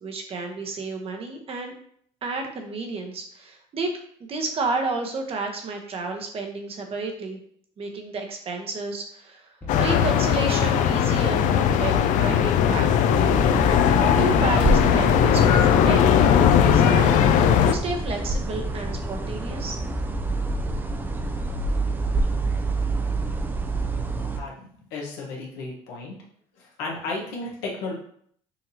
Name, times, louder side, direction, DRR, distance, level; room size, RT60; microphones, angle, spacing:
voice 1, 0.0-1.7 2.2-3.9 4.3-7.4 7.8-9.5 9.8-12.9 13.7-16.0 16.3-17.2 17.6-19.8, right 3 dB, 45° right, 3 dB, 0.9 m, -31 dB
sound 1, 9.6-16.0, left 2 dB, 15° left, 1.1 m, -38 dB
sound 2, 9.7-17.7, left 9 dB, 65° left, 0.4 m, -19 dB
sound 3, 13.1-24.4, right 2 dB, 15° right, 0.4 m, -27 dB
voice 2, 24.9-26.2 26.5-27.9, left 3 dB, 85° left, -2 dB, 1.2 m, -33 dB
5.7 x 2.8 x 2.8 m, 0.63 s
supercardioid pair, 95°, 14 cm